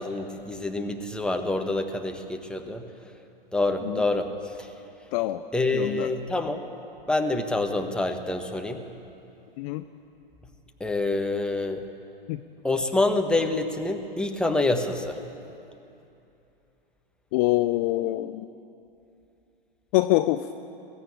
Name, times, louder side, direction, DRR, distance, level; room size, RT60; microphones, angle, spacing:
voice 1, 0.0-2.9 3.5-4.3 4.6-4.7 5.5-6.6 7.1-8.8 10.8-11.8 12.6-15.2, left 2 dB, 5° left, 4 dB, 1.4 m, -26 dB
voice 2, 5.1-5.4 5.7-6.1 9.6-9.8 12.3-12.4 17.3-18.5 19.9-20.5, left 17 dB, 40° left, 11 dB, 0.6 m, -25 dB
21.5 x 15.0 x 8.8 m, 2.8 s
figure-of-eight pair, 105°, 29 cm